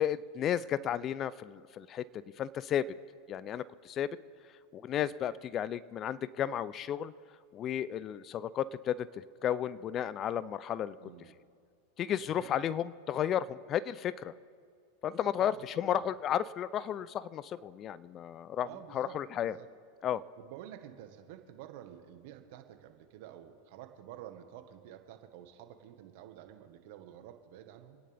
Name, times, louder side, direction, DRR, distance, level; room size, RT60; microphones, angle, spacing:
voice 1, 0.0-2.0 2.4-2.9 3.3-4.1 4.7-7.1 7.5-11.0 12.0-14.3 15.0-18.7 18.9-19.5 20.0-20.2, left 10 dB, 35° left, 18 dB, 0.4 m, -33 dB
voice 2, 11.0-11.4 12.2-12.5 15.4-15.7 15.9-16.2 18.6-19.7 20.4-28.0, right 11 dB, 60° right, 7 dB, 1.5 m, -50 dB
27.0 x 10.0 x 3.5 m, 2.2 s
hypercardioid pair, 110°, 0 cm